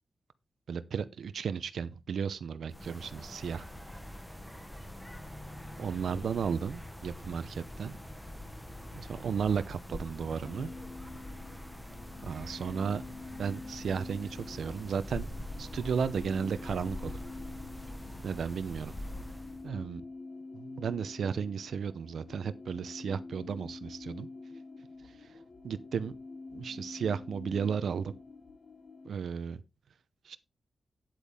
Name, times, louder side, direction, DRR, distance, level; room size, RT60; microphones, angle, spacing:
voice 1, 0.7-3.7 5.8-8.0 8.9-10.7 12.2-13.0 13.4-15.3 15.6-17.2 18.2-18.9 19.6-20.0 20.5-24.3 25.0-25.4 25.6-26.1 26.5-28.1 29.0-29.6 30.2-30.4, right 6 dB, 75° right, 0.7 m, -34 dB
sound 1, 2.7-19.7, left 1 dB, 5° left, 1.1 m, -44 dB
sound 2, 10.4-29.1, left 3 dB, 50° left, 1.1 m, -47 dB
9.2 x 8.3 x 3.5 m
wide cardioid pair, 145°, 0 cm